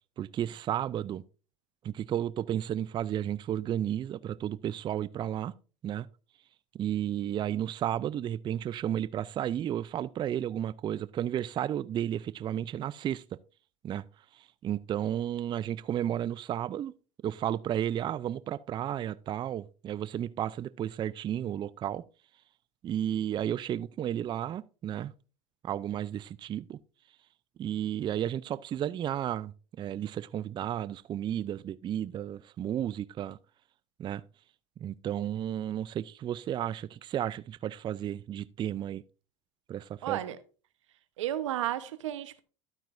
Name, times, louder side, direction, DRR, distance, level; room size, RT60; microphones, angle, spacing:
voice 1, 0.2-1.2 1.8-5.5 5.8-6.1 6.8-13.2 13.8-14.0 14.3-16.9 17.2-22.0 22.8-25.1 25.6-26.8 27.6-29.5 29.8-33.4 34.0-34.2 34.8-39.0 39.7-40.2, right 10 dB, 30° right, 0.4 m, -33 dB
voice 2, 40.0-40.4 41.2-42.4, right 12 dB, 90° right, 0.9 m, -32 dB
12.0 x 9.0 x 2.5 m
hypercardioid pair, 95°, 15 cm